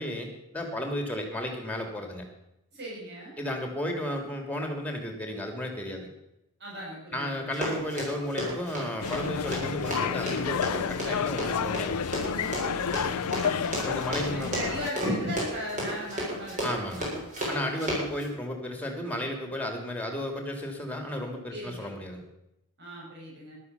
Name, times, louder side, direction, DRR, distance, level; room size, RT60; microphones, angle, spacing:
voice 1, 0.0-2.2 3.4-6.1 7.1-12.1 13.8-14.5 16.6-17.1 17.5-22.2, left 1 dB, 5° left, 3 dB, 3.0 m, -33 dB
voice 2, 2.7-3.3 6.6-7.5 12.3-13.8 14.3-18.1 21.5-21.9 22.8-23.5, equal, 50° right, -4 dB, 7.2 m, -39 dB
Run, 7.5-18.2, equal, 35° right, 7.3 m, -32 dB
sound 1, 9.0-14.9, left 7 dB, 90° left, 0.5 m, -30 dB
14.5 x 12.5 x 7.0 m, 0.85 s
head